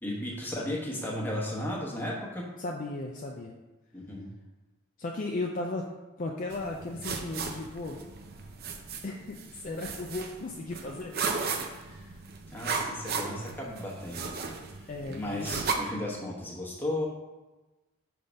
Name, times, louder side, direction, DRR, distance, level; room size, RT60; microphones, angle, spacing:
voice 1, 0.0-2.5 3.9-4.3 12.5-14.3 14.7-17.1, left 1 dB, 10° left, -4 dB, 1.0 m, -35 dB
voice 2, 2.6-3.5 5.0-5.9 6.2-8.0 9.0-11.1 11.8-12.2 14.9-15.5, left 2 dB, 40° left, 0 dB, 0.4 m, -36 dB
sound 1, 6.5-15.7, right 5 dB, 45° right, 0.5 m, -36 dB
5.5 x 3.4 x 5.2 m, 1.1 s
head